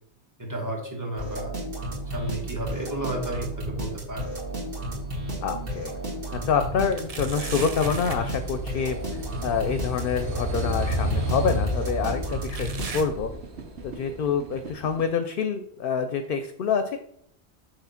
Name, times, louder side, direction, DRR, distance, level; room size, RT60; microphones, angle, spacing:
voice 1, 0.4-1.5 2.1-4.3, right 1 dB, 15° right, 0 dB, 1.4 m, -32 dB
sound 1, 1.2-13.4, right 1 dB, 60° right, 2.0 m, -33 dB
sound 2, 2.4-3.1 3.4-5.3 5.8-5.9 6.9-8.3 10.0-10.1 11.0-11.1 12.5-13.9 14.2-14.6 15.2-15.3 16.2-16.3, right 4 dB, 40° right, 0.7 m, -40 dB
sound 3, 3.7-15.0, equal, 90° right, 1.2 m, -33 dB
voice 2, 5.4-5.9 6.5-9.0 9.4-13.3 13.8-17.0, left 6 dB, 65° left, 8 dB, 0.7 m, -26 dB
5.9 x 3.4 x 5.7 m, 0.69 s
omnidirectional pair, 1.1 m